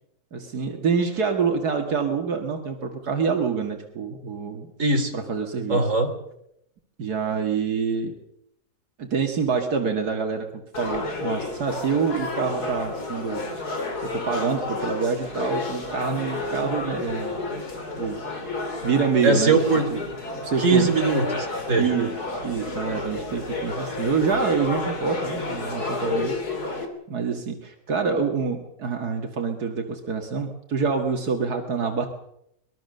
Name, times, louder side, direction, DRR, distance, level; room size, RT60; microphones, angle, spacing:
voice 1, 0.3-4.7 5.1-5.8 7.0-8.1 9.0-13.4 14.0-17.4 18.0-18.2 18.8-19.6 19.9-20.0 20.4-20.9 21.8-26.4 27.1-32.1, right 5 dB, 80° right, 3 dB, 2.4 m, -26 dB
voice 2, 4.8-5.1 5.7-6.1 19.2-19.9 20.6-22.0, right 3 dB, 55° right, 4 dB, 3.5 m, -21 dB
sound 1, 10.7-26.9, left 2 dB, 80° left, 3.7 m, -31 dB
24.0 x 21.5 x 6.6 m, 0.77 s
omnidirectional pair, 1.7 m